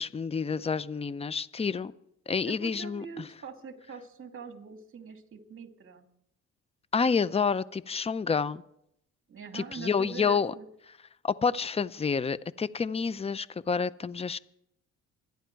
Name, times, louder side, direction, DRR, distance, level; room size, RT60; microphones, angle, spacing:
voice 1, 0.0-1.9 2.3-3.0 6.9-8.6 9.5-10.5 11.2-14.4, left 5 dB, 20° left, 18 dB, 0.6 m, -29 dB
voice 2, 2.5-6.1 9.3-10.7, right 6 dB, 45° right, 6 dB, 2.4 m, -43 dB
26.0 x 10.5 x 4.6 m, 0.76 s
cardioid pair, 90°, 30 cm